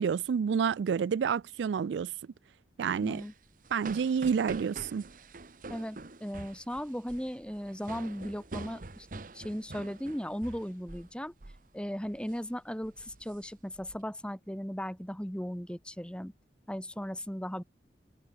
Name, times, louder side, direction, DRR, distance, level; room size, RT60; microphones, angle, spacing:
voice 1, 0.0-2.1 2.8-3.2 3.7-5.1, right 6 dB, 90° right, 0.3 m, -29 dB
voice 2, 3.0-3.3 5.7-9.1 9.3-11.3 11.7-16.3 16.7-17.6, equal, 5° left, 2.4 m, -37 dB
sound 1, 3.0-11.1 11.4-11.7 12.0-12.4 12.8-14.0, right 2 dB, 50° right, 1.1 m, -46 dB
head